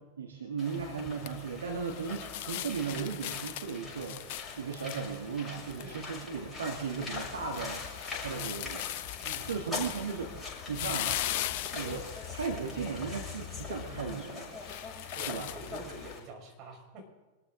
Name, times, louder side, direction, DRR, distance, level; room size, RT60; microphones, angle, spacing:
voice 1, 0.2-8.9 9.5-11.2 11.7-12.0 12.3-14.5 15.3-15.5, right 5 dB, 70° right, 1 dB, 2.0 m, -36 dB
sound 1, 0.6-16.2, left 4 dB, 15° left, 6.8 m, -43 dB
sound 2, 1.0-16.1, left 13 dB, 50° left, 0.7 m, -40 dB
voice 2, 5.8-6.1 9.2-9.6 15.1-17.1, right 2 dB, 35° right, 0 dB, 5.9 m, -47 dB
25.0 x 14.0 x 3.9 m, 1.2 s
figure-of-eight pair, 90°, 0 cm